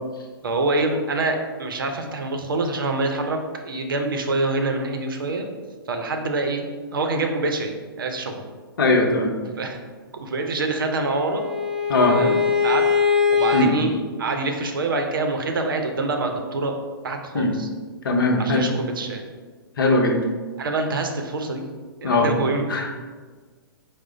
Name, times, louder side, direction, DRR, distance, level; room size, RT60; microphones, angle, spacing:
voice 1, 0.4-3.4 3.7-5.5 5.9-8.5 9.6-9.8 10.1-11.4 12.1-12.9 13.3-13.9 14.2-16.7 17.0-17.7 18.4-19.2 20.6-21.6 22.0-22.7, right 3 dB, 65° right, 4 dB, 0.6 m, -25 dB
voice 2, 8.8-9.3 11.9-12.2 13.5-13.7 17.3-17.5 18.0-18.7 19.8-20.2 22.0-22.3 22.7-22.9, left 2 dB, 60° left, 1 dB, 0.7 m, -19 dB
Bowed string instrument, 10.5-13.7, left 6 dB, 5° right, 0.4 m, -22 dB
4.7 x 2.0 x 3.8 m, 1.4 s
figure-of-eight pair, 115°, 12 cm